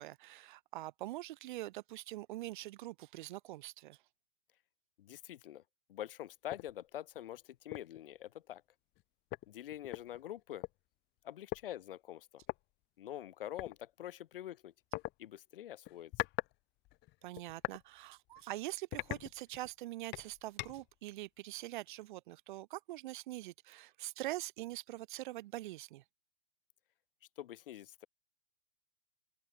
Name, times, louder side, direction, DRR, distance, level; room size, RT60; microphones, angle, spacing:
voice 1, 0.0-4.0 17.2-26.0, right 16 dB, 55° right, 2.5 m, -44 dB
voice 2, 5.0-5.6 5.9-8.6 9.5-10.7 11.2-12.4 13.0-14.7 15.2-16.2 27.4-28.1, left 12 dB, 65° left, 4.8 m, -46 dB
sound 1, 6.5-6.7 7.2-7.3 7.7-8.0 9.0-9.1 9.3-10.7 11.5-11.6 12.4-12.6 13.6-13.7 14.9-15.1 15.8-16.5 16.8-17.8 18.3-18.4 18.9-19.7 20.1-20.9, left 21 dB, 35° left, 4.6 m, -41 dB
hypercardioid pair, 125°, 30 cm